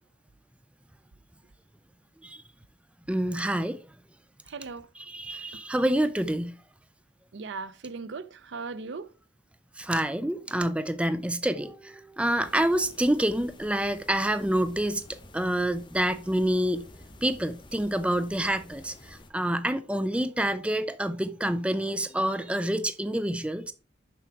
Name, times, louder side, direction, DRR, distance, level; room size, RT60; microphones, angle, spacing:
voice 1, 3.1-3.8 5.0-6.5 9.8-15.0 15.3-16.9 17.2-23.7, right 1 dB, 5° right, 0.4 m, -27 dB
voice 2, 4.5-4.9 7.3-9.1, right 4 dB, 80° right, 0.6 m, -38 dB
sound 1, 12.4-19.3, left 1 dB, 25° left, 1.2 m, -50 dB
7.0 x 5.9 x 4.6 m
head